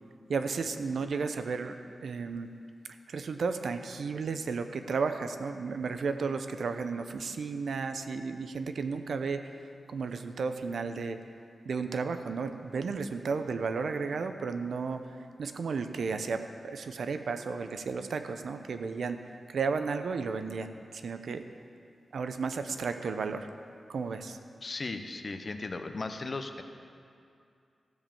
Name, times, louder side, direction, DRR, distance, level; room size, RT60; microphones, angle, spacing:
voice 1, 0.3-2.5 3.1-9.5 9.9-11.2 11.7-15.0 15.4-19.2 19.5-21.4 22.1-23.5 23.9-24.4, right 5 dB, 70° right, 8 dB, 0.5 m, -33 dB
voice 2, 24.6-26.6, left 3 dB, 35° left, 7 dB, 0.6 m, -36 dB
14.0 x 5.2 x 7.1 m, 2.4 s
wide cardioid pair, 155°, 0 cm